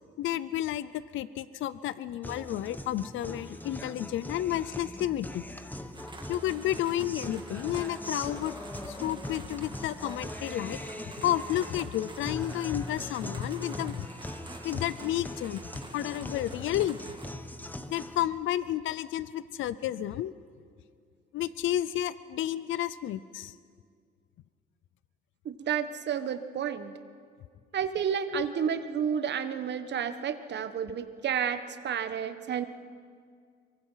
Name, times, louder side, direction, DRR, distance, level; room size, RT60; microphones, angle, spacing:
voice 1, 0.2-5.4 6.3-8.5 8.8-10.8 11.2-14.1 14.6-15.6 15.9-17.0 17.9-20.3 21.3-23.6 28.3-28.4, left 12 dB, 80° left, 16 dB, 0.6 m, -31 dB
Guitar, 2.2-18.2, left 1 dB, 10° left, 1.2 m, -41 dB
sound 1, 5.9-17.3, right 3 dB, 25° right, 2.2 m, -48 dB
voice 2, 25.4-26.9 27.7-32.7, right 8 dB, 60° right, 10 dB, 1.4 m, -31 dB
23.5 x 23.5 x 5.8 m, 2.1 s
cardioid pair, 90°, 20 cm